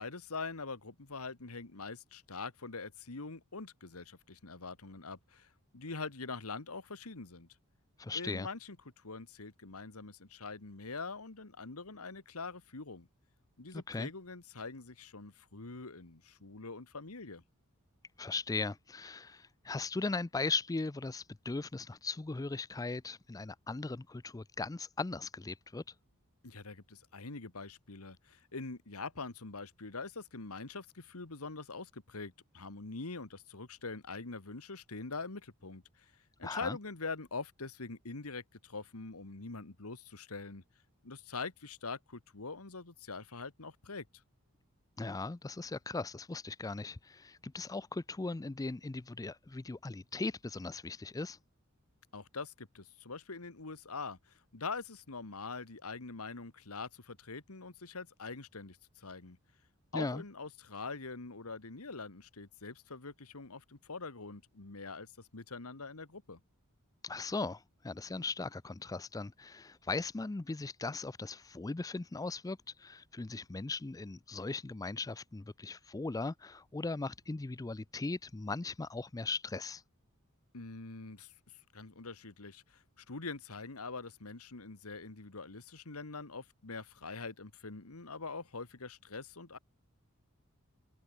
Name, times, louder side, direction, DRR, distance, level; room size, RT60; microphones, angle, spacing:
voice 1, 0.0-7.5 8.1-13.1 13.6-17.4 26.4-36.1 36.4-40.6 41.0-44.1 52.1-59.4 59.9-66.4 80.5-89.6, left 4 dB, 90° left, 1.8 m, -44 dB
voice 2, 8.0-8.5 13.9-14.1 18.2-25.8 36.4-36.8 45.0-51.4 59.9-60.2 67.0-79.8, left 3 dB, 15° left, 0.4 m, -38 dB
head